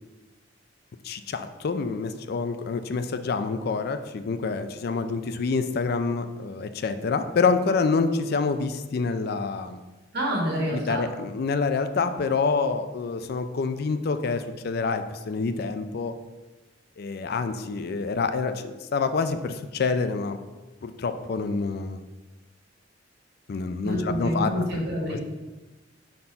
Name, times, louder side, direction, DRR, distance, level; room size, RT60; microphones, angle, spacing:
voice 1, 1.0-9.8 10.7-16.2 17.0-20.4 20.8-22.0 23.5-24.5 25.1-25.2, left 4 dB, 55° left, 10 dB, 0.4 m, -27 dB
voice 2, 10.1-11.1 23.8-25.2, equal, 60° right, -2 dB, 1.6 m, -27 dB
5.4 x 4.3 x 4.3 m, 1.2 s
head